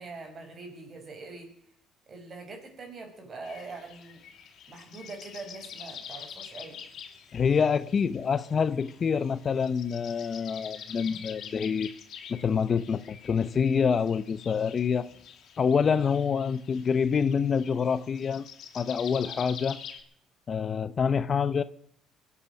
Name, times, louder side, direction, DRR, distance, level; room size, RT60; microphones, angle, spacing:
voice 1, 0.0-1.5 2.1-4.2 4.7-6.8, right 3 dB, 35° right, 5.4 m, -43 dB
sound 1, 3.4-20.0, left 8 dB, 60° left, 3.0 m, -46 dB
voice 2, 7.3-11.9 12.3-15.1 15.6-18.4 18.7-19.8 20.5-21.6, left 6 dB, 40° left, 0.7 m, -26 dB
23.0 x 8.5 x 6.4 m
cardioid pair, 110°, 0 cm